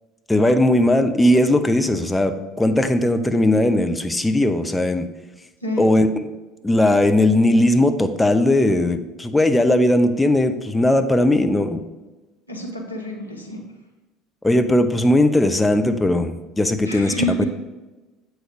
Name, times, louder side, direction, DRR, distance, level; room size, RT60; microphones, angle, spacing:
voice 1, 0.3-5.0 5.8-6.3 6.6-11.8 14.4-17.4, left 1 dB, 10° left, 7 dB, 0.6 m, -18 dB
voice 2, 12.5-13.6 16.9-17.4, left 1 dB, 90° left, 0 dB, 0.9 m, -27 dB
7.7 x 3.2 x 5.1 m, 1.1 s
figure-of-eight pair, 65°, 0 cm